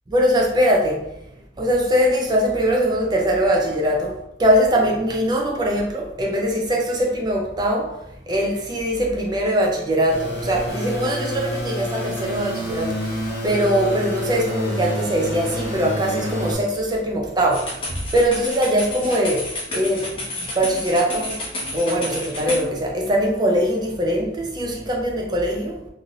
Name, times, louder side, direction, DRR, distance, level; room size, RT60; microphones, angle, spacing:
voice 1, 0.1-1.1 1.6-25.9, equal, 25° right, 0.4 m, -22 dB
sound 1, 10.1-16.5, equal, 65° left, 0.9 m, -28 dB
sound 2, 17.5-22.6, left 1 dB, 30° left, 0.8 m, -30 dB
3.0 x 2.5 x 2.6 m
head